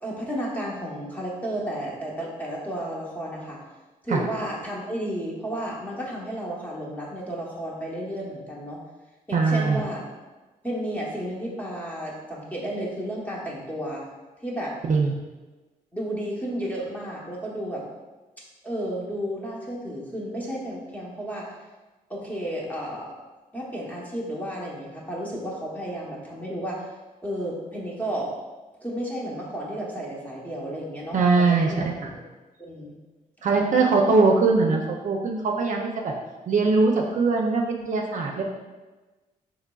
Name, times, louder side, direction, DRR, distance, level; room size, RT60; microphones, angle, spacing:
voice 1, 0.0-3.6 4.0-8.8 9.3-10.0 10.6-14.1 14.4-14.8 15.9-17.8 18.6-21.5 22.1-23.1 23.5-26.8 27.2-28.3 28.8-31.2 31.5-31.8 32.6-33.0 33.5-33.6, right 1 dB, 10° left, -4 dB, 0.9 m, -32 dB
voice 2, 9.3-9.8 14.8-15.1 31.1-31.7 33.4-36.1 36.5-38.4, right 4 dB, 60° right, 0 dB, 0.5 m, -21 dB
3.8 x 3.0 x 2.3 m, 1.2 s
cardioid pair, 85°, 15 cm